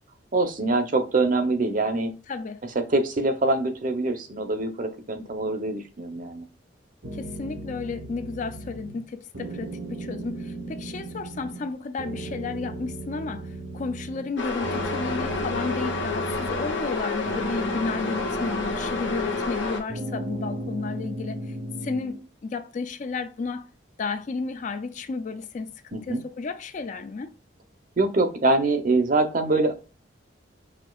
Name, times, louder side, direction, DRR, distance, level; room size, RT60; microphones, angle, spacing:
voice 1, 0.3-2.1 2.9-6.4 25.9-26.2 28.0-29.7, right 2 dB, 45° right, 0.7 m, -24 dB
voice 2, 2.3-2.6 7.1-21.5 21.8-23.7 24.0-27.3, left 4 dB, 40° left, 0.3 m, -33 dB
sound 1, 7.0-9.1 9.3-11.7 12.0-14.3 14.6-17.0 17.3-19.6 19.9-22.2, right 1 dB, 75° right, 1.0 m, -36 dB
sound 2, 14.4-19.8, left 3 dB, 80° left, 0.9 m, -29 dB
5.7 x 2.8 x 2.3 m
head